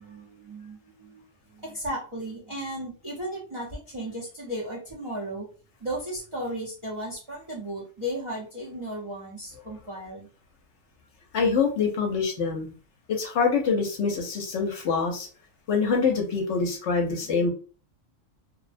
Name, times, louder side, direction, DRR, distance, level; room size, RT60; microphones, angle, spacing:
voice 1, 0.0-5.5 5.8-10.3 17.2-17.5, equal, 30° right, -6 dB, 0.5 m, -35 dB
voice 2, 11.3-12.7 13.1-15.3 15.7-17.5, left 5 dB, 65° left, 2 dB, 0.9 m, -25 dB
2.5 x 2.0 x 2.5 m, 0.37 s
omnidirectional pair, 1.4 m